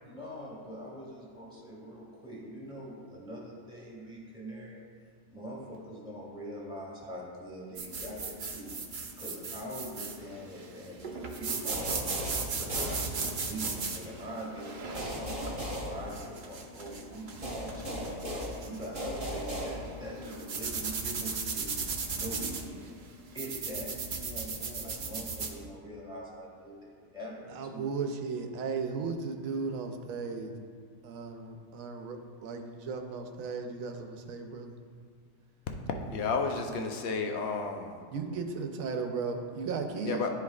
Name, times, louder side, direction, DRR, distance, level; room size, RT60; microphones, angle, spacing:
voice 1, 0.0-4.9 5.3-8.7 9.2-12.2 12.5-15.4 15.8-21.8 22.1-23.0 23.3-27.9, equal, 5° right, -5 dB, 1.5 m, -43 dB
sound 1, 7.8-25.6, right 4 dB, 50° right, 0.6 m, -37 dB
sound 2, 11.7-13.6 14.9-16.7 17.4-20.2, equal, 30° right, 1.0 m, -37 dB
voice 2, 27.5-30.5 31.0-34.8 38.1-40.2, right 4 dB, 90° right, 5 dB, 1.1 m, -36 dB
voice 3, 36.1-38.0 40.0-40.3, left 4 dB, 60° left, 4 dB, 0.8 m, -32 dB
11.5 x 4.7 x 2.4 m, 2.1 s
omnidirectional pair, 1.4 m